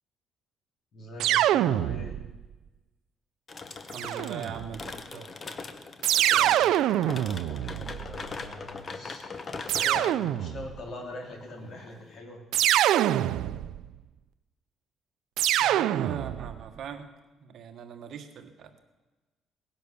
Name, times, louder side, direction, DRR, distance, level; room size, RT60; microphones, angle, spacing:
voice 1, 0.9-2.2 7.6-9.3 9.8-12.4, left 1 dB, 45° left, 1 dB, 3.6 m, -42 dB
sound 1, 1.2-2.4 3.9-4.8 6.0-8.4 9.7-10.8 12.5-13.9 15.4-16.6, right 12 dB, 80° right, 0.5 m, -25 dB
sound 2, 3.5-12.2, left 4 dB, 30° left, 1.1 m, -41 dB
voice 2, 3.9-5.3 6.3-6.8 15.6-17.1 17.4-18.7, right 7 dB, 60° right, 6 dB, 1.6 m, -40 dB
18.5 x 10.5 x 7.0 m, 1.2 s
cardioid pair, 145°, 0 cm